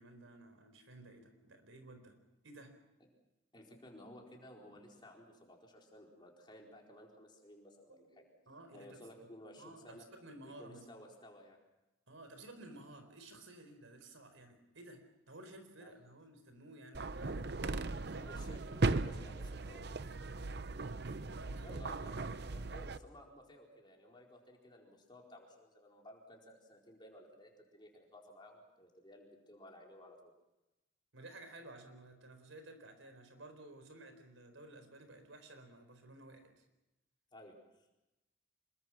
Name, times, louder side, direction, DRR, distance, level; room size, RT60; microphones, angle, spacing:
voice 1, 0.0-2.2 2.4-2.8 7.9-9.0 9.6-10.9 12.1-17.6 18.1-18.4 20.2-20.7 21.3-22.1 31.1-36.6, right 2 dB, 85° right, 8 dB, 4.4 m, -54 dB
voice 2, 3.5-8.2 8.7-10.0 10.4-11.6 15.8-15.9 18.2-19.8 21.6-22.2 22.5-30.3 37.3-37.9, left 1 dB, 25° left, 0 dB, 4.4 m, -56 dB
sound 1, 16.9-23.0, right 3 dB, 55° right, 0.7 m, -38 dB
26.5 x 22.5 x 6.1 m, 0.98 s
head